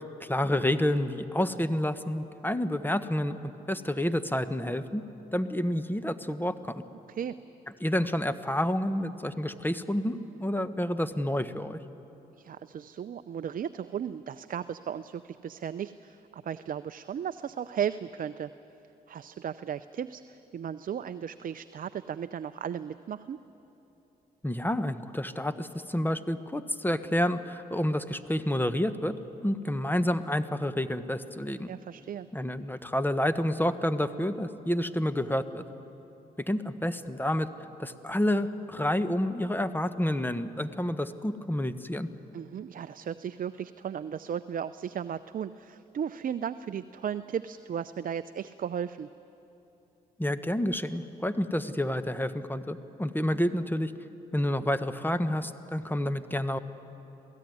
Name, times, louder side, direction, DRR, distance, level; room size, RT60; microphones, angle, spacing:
voice 1, 0.2-5.0 5.3-6.8 7.8-11.8 24.4-29.1 29.4-31.7 32.3-35.6 36.5-37.5 37.8-42.1 50.2-53.9 54.3-56.6, left 1 dB, 10° left, 11 dB, 1.3 m, -29 dB
voice 2, 12.4-18.5 19.1-23.4 31.7-32.3 42.3-49.1, right 8 dB, 50° right, 12 dB, 0.6 m, -35 dB
26.5 x 16.5 x 9.5 m, 3.0 s
supercardioid pair, 50°, 18 cm